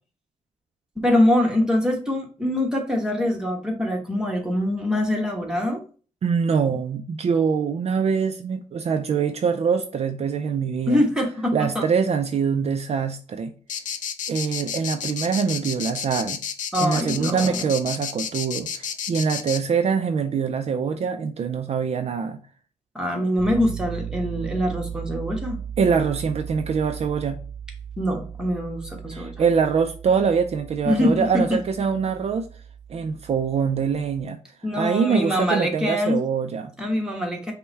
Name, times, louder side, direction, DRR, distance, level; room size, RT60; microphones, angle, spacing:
voice 1, 1.0-5.8 10.9-11.9 16.7-17.7 22.9-25.6 28.0-29.3 30.9-31.6 34.6-36.2 36.8-37.5, left 1 dB, 5° right, 1.1 m, -24 dB
voice 2, 6.2-11.0 11.5-13.5 14.3-16.4 16.8-22.4 25.8-27.4 29.1-32.5 32.9-34.4 34.8-36.7, right 6 dB, 50° right, 0.4 m, -24 dB
sound 1, 13.7-19.6, left 7 dB, 70° left, 0.5 m, -30 dB
Piano, 23.4-34.2, right 8 dB, 40° left, 1.7 m, -37 dB
5.4 x 2.2 x 4.5 m
wide cardioid pair, 125°, 13 cm